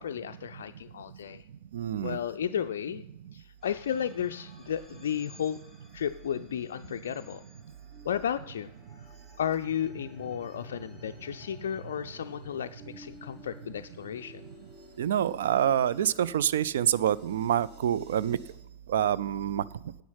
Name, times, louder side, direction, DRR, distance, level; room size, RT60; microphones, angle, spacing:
voice 1, 0.0-1.4 2.0-3.0 3.3-5.6 5.9-7.4 8.0-8.7 9.0-9.1 9.4-14.4, left 9 dB, 60° left, 7 dB, 0.3 m, -33 dB
voice 2, 1.7-2.2 15.0-18.4 18.9-19.6, right 10 dB, 60° right, 17 dB, 0.4 m, -26 dB
sound 1, 3.6-16.0, left 1 dB, 20° right, 2.8 m, -55 dB
sound 2, 3.6-18.5, right 1 dB, 40° right, 4.1 m, -56 dB
10.0 x 8.2 x 5.6 m, 0.87 s
figure-of-eight pair, 90°, 0 cm